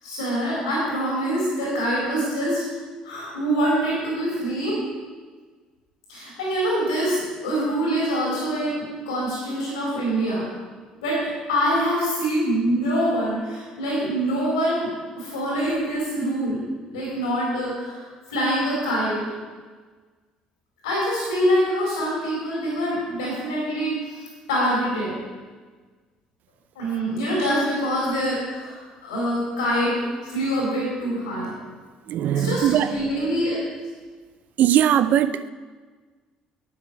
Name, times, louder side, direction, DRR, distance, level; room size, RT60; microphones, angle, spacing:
voice 1, 0.0-2.6 3.0-4.8 6.1-10.5 11.0-11.2 11.5-14.9 15.2-16.6 16.9-19.2 20.8-25.1 26.7-31.5 32.3-33.6, equal, 80° left, -6 dB, 4.1 m, -25 dB
voice 2, 32.1-32.9 34.6-35.5, right 10 dB, 55° right, 13 dB, 0.6 m, -20 dB
12.0 x 8.9 x 4.8 m, 1.4 s
figure-of-eight pair, 55°, 3 cm